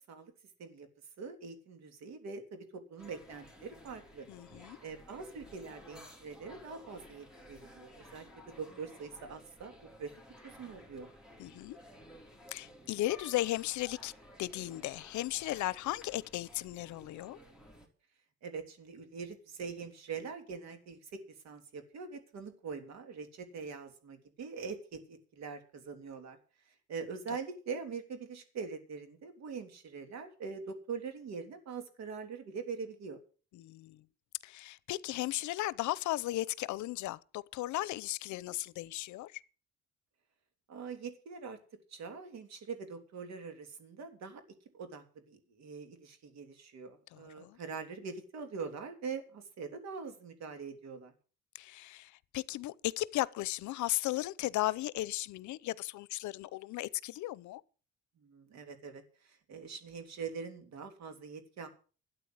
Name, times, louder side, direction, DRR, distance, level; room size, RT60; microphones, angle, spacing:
voice 1, 1.2-4.3 4.8-9.7 10.0-10.1 10.4-11.1 18.4-21.2 21.4-26.4 26.9-33.2 40.7-41.6 41.9-44.4 44.7-51.1 58.2-61.7, right 5 dB, 65° right, 3.3 m, -43 dB
sound 1, 3.0-17.9, equal, 5° right, 3.5 m, -55 dB
voice 2, 4.3-4.8 11.4-11.8 12.5-14.1 14.4-17.4 33.5-34.0 34.4-39.4 47.1-47.6 51.5-57.6, left 16 dB, 80° left, 0.7 m, -36 dB
13.0 x 8.9 x 7.9 m
cardioid pair, 140°, 29 cm